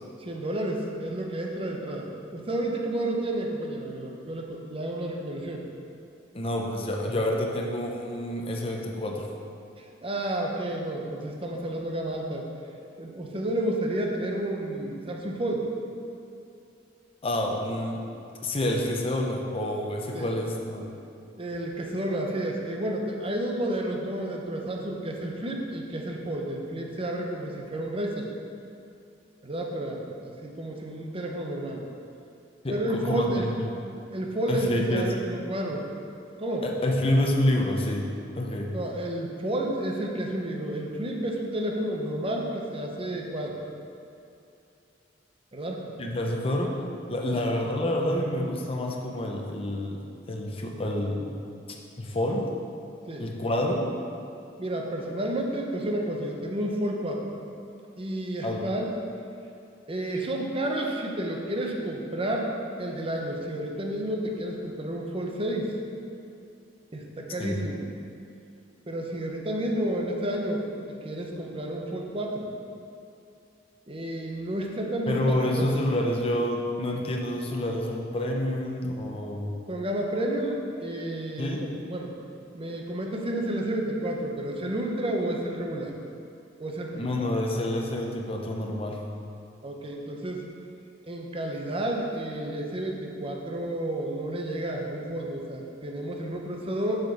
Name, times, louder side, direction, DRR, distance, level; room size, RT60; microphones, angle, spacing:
voice 1, 0.2-5.6 9.8-12.5 13.0-15.7 20.1-20.4 21.4-28.3 29.4-31.8 32.7-33.5 34.1-35.8 36.4-36.7 38.7-43.6 45.5-45.8 47.3-47.5 53.1-53.3 54.6-57.3 57.9-58.9 59.9-62.5 62.8-65.7 66.9-67.8 68.9-72.5 73.9-75.8 79.7-82.1 82.5-85.9 86.6-87.1 89.6-90.5 91.1-96.9, right 1 dB, 30° right, 0 dB, 0.9 m, -31 dB
voice 2, 6.3-9.3 17.2-18.0 18.4-20.9 32.6-33.7 34.5-35.1 36.6-38.1 38.4-38.7 46.0-46.7 47.1-50.0 50.3-51.3 52.0-52.4 53.2-53.8 58.4-58.7 67.4-67.6 75.1-79.6 81.4-81.6 87.0-89.0, left 1 dB, 30° left, 0 dB, 0.8 m, -28 dB
6.6 x 5.2 x 5.9 m, 2.7 s
head